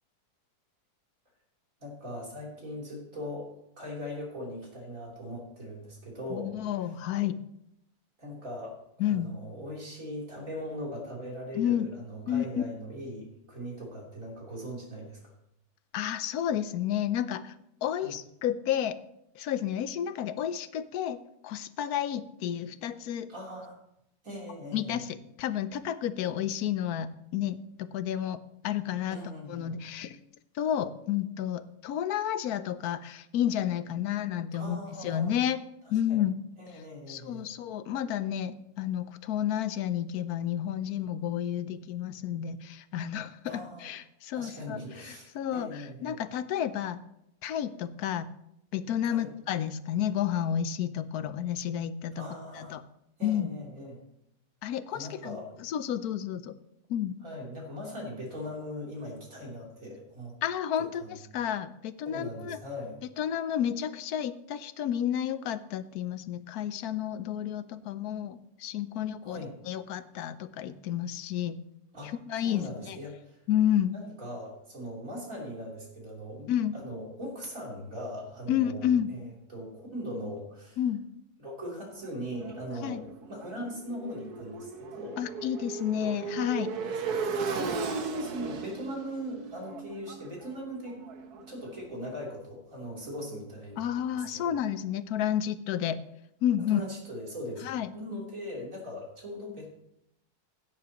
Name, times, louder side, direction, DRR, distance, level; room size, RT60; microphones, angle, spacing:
voice 1, 1.8-6.5 8.2-15.3 18.0-18.1 23.3-23.8 24.2-25.1 29.1-29.8 34.6-35.4 36.1-36.2 36.6-37.5 43.5-43.9 44.3-46.2 49.1-49.3 52.1-52.8 53.2-54.0 54.9-55.6 57.2-60.3 61.0-61.1 62.1-63.0 69.2-69.5 71.9-72.1 72.4-73.4 73.9-79.2 79.5-80.8 81.4-83.0 83.3-85.2 86.0-86.2 86.8-91.0 91.3-94.4 96.7-97.7 97.9-99.7, equal, 55° right, -3 dB, 3.9 m, -40 dB
voice 2, 6.3-7.4 9.0-9.3 11.5-11.9 12.3-12.6 15.9-17.5 17.8-19.0 19.3-23.3 24.7-29.2 29.5-30.2 30.5-35.6 35.9-36.4 37.1-47.0 47.4-48.3 48.7-52.2 52.5-52.8 53.2-53.5 54.6-56.6 56.9-57.2 60.4-62.6 63.2-71.6 72.3-73.0 73.5-74.0 76.5-76.7 78.5-79.1 80.8-81.0 82.8-83.0 85.2-86.7 93.8-96.0 96.4-96.8 97.6-97.9, left 10 dB, 75° left, 13 dB, 1.1 m, -31 dB
Motorcycle, 82.0-91.9, right 5 dB, 80° right, 1.5 m, -37 dB
16.5 x 9.4 x 3.0 m, 0.80 s
omnidirectional pair, 1.6 m